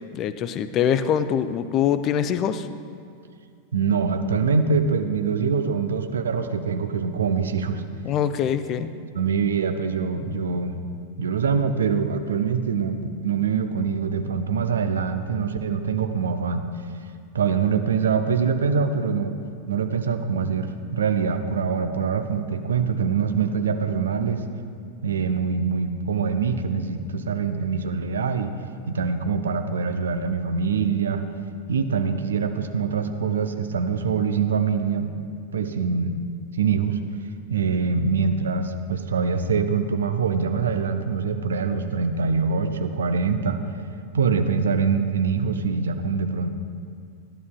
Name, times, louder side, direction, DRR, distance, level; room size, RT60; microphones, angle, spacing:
voice 1, 0.1-2.7 8.0-8.9, left 9 dB, 35° left, 12 dB, 0.4 m, -23 dB
voice 2, 3.7-7.8 9.1-10.7 11.2-16.7 17.3-19.3 19.7-24.4 25.0-28.5 28.9-31.2 31.7-35.1 35.5-36.1 36.6-37.0 37.5-43.6 44.1-46.5, right 5 dB, 65° right, 8 dB, 0.5 m, -24 dB
13.5 x 11.0 x 2.2 m, 2.3 s
figure-of-eight pair, 90°, 0 cm